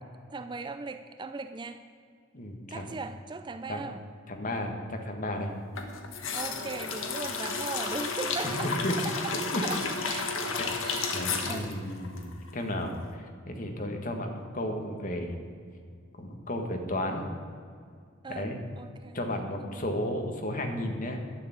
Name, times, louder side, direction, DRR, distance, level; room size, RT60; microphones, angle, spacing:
voice 1, 0.3-1.8 2.7-4.0 6.3-9.4 9.6-11.7 18.2-18.5 18.8-19.2 19.6-19.9, right 3 dB, 20° right, 9 dB, 0.4 m, -39 dB
voice 2, 2.3-2.8 3.7-3.8 4.3-5.5 8.4-9.0 9.5-9.6 10.1-10.2 10.6-10.7 11.1-13.0 13.5-15.4 16.2-17.3 18.3-18.6 19.1-21.2, left 1 dB, 40° left, 4 dB, 1.5 m, -33 dB
sound 1, 5.7-12.8 13.0-13.1, left 4 dB, 75° left, 1.3 m, -33 dB
11.5 x 6.8 x 8.7 m, 2.2 s
head